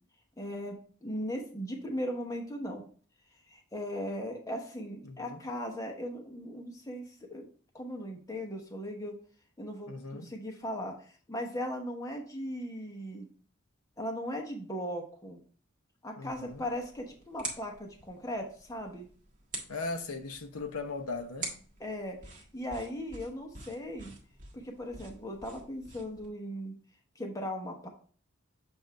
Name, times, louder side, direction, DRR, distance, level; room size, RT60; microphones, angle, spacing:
voice 1, 0.4-2.8 3.5-7.5 7.7-9.1 9.6-13.3 14.0-15.4 16.0-19.1 21.8-24.1 24.5-26.7 27.2-27.9, equal, 15° left, 0.9 m, -38 dB
voice 2, 5.0-5.4 9.9-10.3 16.2-16.6 19.7-21.5, left 3 dB, 90° left, 0.9 m, -38 dB
sound 1, 16.3-26.3, right 2 dB, 40° right, 1.6 m, -46 dB
7.8 x 2.6 x 4.5 m
head